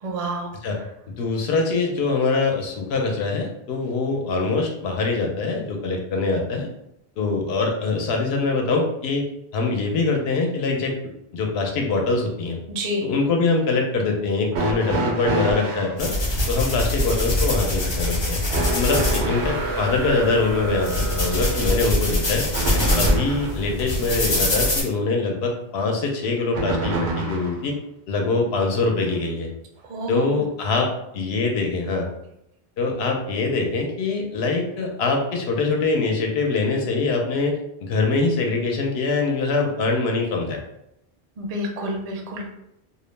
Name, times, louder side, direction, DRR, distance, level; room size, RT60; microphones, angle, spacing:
voice 1, 0.0-0.5 12.7-13.0 29.9-30.3 41.4-42.5, equal, 50° right, 0 dB, 0.5 m, -28 dB
voice 2, 1.2-6.7 7.2-9.2 9.5-10.9 11.3-12.6 13.0-16.1 16.5-18.4 18.7-22.5 22.7-27.7 28.1-29.5 30.1-32.1 32.8-40.6, left 3 dB, 75° left, 2 dB, 0.8 m, -23 dB
sound 1, 14.5-16.0 18.5-23.6 26.5-27.6 28.8-28.9 30.0-30.1, right 2 dB, 85° right, 0.8 m, -28 dB
sound 2, 16.0-24.8, left 1 dB, 35° left, 0.5 m, -24 dB
2.3 x 2.0 x 3.1 m, 0.82 s
omnidirectional pair, 1.1 m